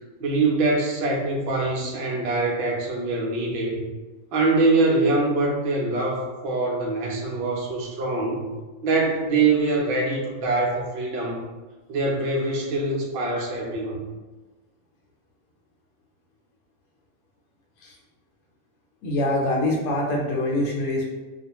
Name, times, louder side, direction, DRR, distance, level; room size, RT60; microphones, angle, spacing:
voice 1, 0.2-3.8 4.3-8.4 8.8-11.4 11.9-14.0, right 3 dB, 65° right, -1 dB, 0.5 m, -24 dB
voice 2, 19.0-21.1, left 1 dB, 80° left, -1 dB, 1.1 m, -24 dB
2.4 x 2.2 x 2.9 m, 1.2 s
omnidirectional pair, 1.5 m